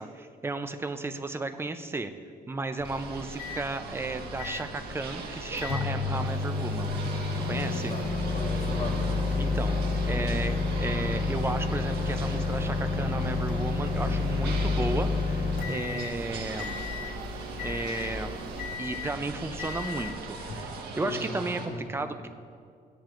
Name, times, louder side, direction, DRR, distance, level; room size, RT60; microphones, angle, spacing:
voice 1, 0.0-2.1 2.5-6.9 7.5-7.9 9.4-9.8 10.1-16.8 17.6-18.4 18.8-20.7 21.0-22.3, right 3 dB, 15° right, 8 dB, 0.5 m, -34 dB
Microwave oven, 2.8-20.8, left 4 dB, 60° left, 0.9 m, -31 dB
sound 1, 2.8-21.7, right 4 dB, 80° right, 1.4 m, -41 dB
sound 2, 6.2-18.8, right 7 dB, 55° right, 0.7 m, -44 dB
voice 2, 7.7-9.1 21.0-21.9, left 2 dB, 45° left, 1 dB, 1.4 m, -37 dB
16.0 x 10.5 x 2.5 m, 2.2 s
cardioid pair, 135°, 17 cm